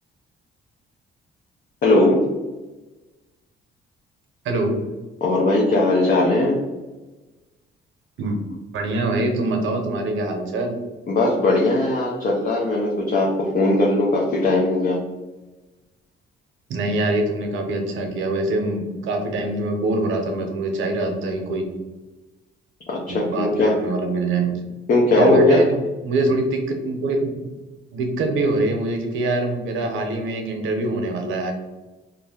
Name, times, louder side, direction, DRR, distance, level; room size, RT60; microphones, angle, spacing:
voice 1, 1.8-2.2 5.2-6.6 11.1-15.0 22.9-23.8 24.9-25.6, left 2 dB, 45° left, -3 dB, 0.6 m, -19 dB
voice 2, 4.4-4.8 8.2-8.4 8.7-10.7 16.7-21.7 23.1-24.7 25.2-25.7 26.0-27.4 27.9-31.5, right 1 dB, 80° right, 3 dB, 0.7 m, -23 dB
2.5 x 2.1 x 3.4 m, 1.1 s
cardioid pair, 90°, 20 cm